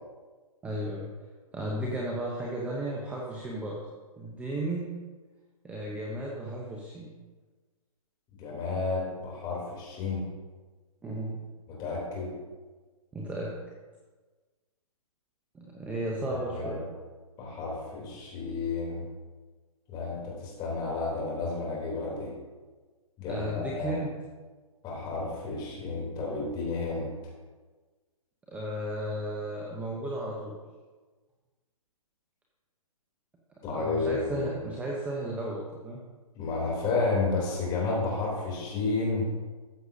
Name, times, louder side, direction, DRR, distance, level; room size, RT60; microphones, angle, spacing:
voice 1, 0.6-1.1 1.5-3.8 4.2-5.0 5.6-7.1 11.0-11.4 13.1-13.5 15.5-16.8 23.3-24.1 28.5-30.6 33.7-36.0, right 1 dB, 5° right, -3 dB, 0.8 m, -34 dB
voice 2, 8.4-10.3 11.7-12.3 16.3-16.8 17.4-19.0 19.9-22.3 23.2-24.0 24.8-27.3 33.6-34.5 36.3-39.3, left 3 dB, 20° left, -3 dB, 3.2 m, -31 dB
13.5 x 7.8 x 2.8 m, 1.3 s
hypercardioid pair, 140°, 19 cm